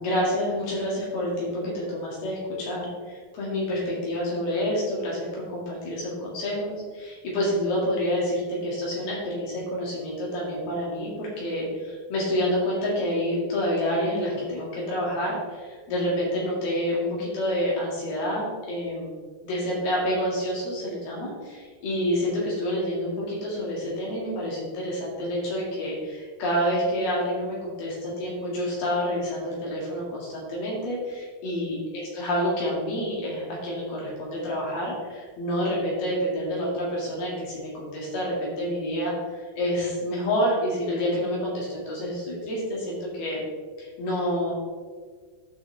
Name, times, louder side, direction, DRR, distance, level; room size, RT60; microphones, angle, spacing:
voice 1, 0.0-19.1 19.4-39.1 39.6-43.4 43.8-44.5, equal, 80° left, -5 dB, 4.3 m, -28 dB
13.5 x 6.3 x 3.5 m, 1.6 s
omnidirectional pair, 4.3 m